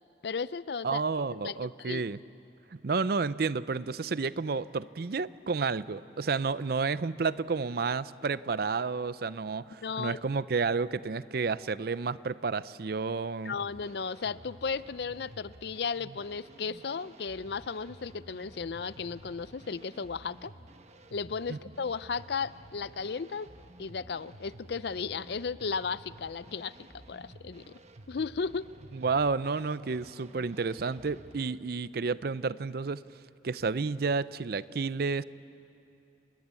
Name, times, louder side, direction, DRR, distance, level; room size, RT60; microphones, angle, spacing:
voice 1, 0.2-1.0 1.4-2.0 9.8-10.2 13.4-20.5 21.1-23.5 23.8-26.8 27.1-27.7 28.1-28.7, left 5 dB, 60° left, 17 dB, 0.5 m, -35 dB
voice 2, 0.8-2.2 2.7-13.6 21.5-21.6 28.9-33.0 33.4-35.2, right 4 dB, 55° right, 17 dB, 0.5 m, -31 dB
sound 1, 13.5-31.5, right 1 dB, 35° right, 1.0 m, -52 dB
29.5 x 21.5 x 8.3 m, 2.8 s
head